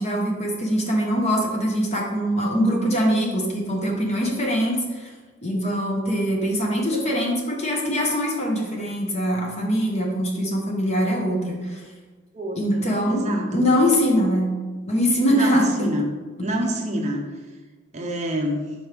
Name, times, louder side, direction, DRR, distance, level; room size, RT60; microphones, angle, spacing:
voice 1, 0.0-5.1 5.4-11.8 12.6-14.5 14.9-15.6 16.4-16.5, equal, 30° left, 0 dB, 1.0 m, -23 dB
voice 2, 12.3-13.6 15.3-16.1 16.4-17.2 17.9-18.7, right 1 dB, 35° right, 1 dB, 0.6 m, -27 dB
6.3 x 4.3 x 3.4 m, 1.4 s
head